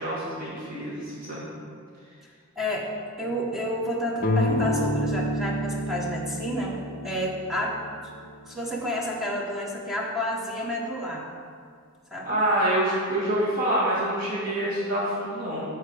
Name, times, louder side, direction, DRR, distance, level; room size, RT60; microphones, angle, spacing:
voice 1, 0.0-1.5 12.2-15.7, right 1 dB, 40° right, -8 dB, 2.4 m, -26 dB
voice 2, 2.6-2.9 3.2-6.8 7.0-7.8 8.4-11.3 12.1-12.4, equal, ahead, -3 dB, 1.1 m, -30 dB
sound 1, 4.2-7.8, left 1 dB, 40° left, 0.7 m, -30 dB
Bass guitar, 4.5-8.0, right 1 dB, 85° right, 2.5 m, -32 dB
14.0 x 4.7 x 4.9 m, 2.2 s
head